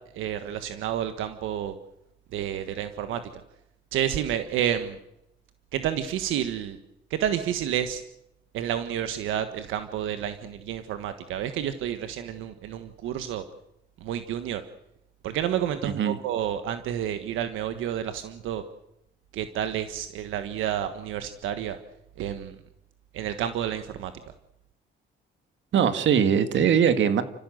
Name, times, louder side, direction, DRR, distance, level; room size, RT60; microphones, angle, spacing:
voice 1, 0.1-1.7 2.3-3.2 3.9-5.0 5.7-6.8 7.1-8.0 8.5-13.4 14.0-14.6 15.2-18.6 19.3-21.8 22.2-22.5 23.1-24.1, right 10 dB, 90° right, 9 dB, 1.5 m, -30 dB
voice 2, 15.8-16.2 25.7-27.2, right 8 dB, 70° right, 10 dB, 2.0 m, -21 dB
30.0 x 15.0 x 7.9 m, 0.84 s
cardioid pair, 90°, 20 cm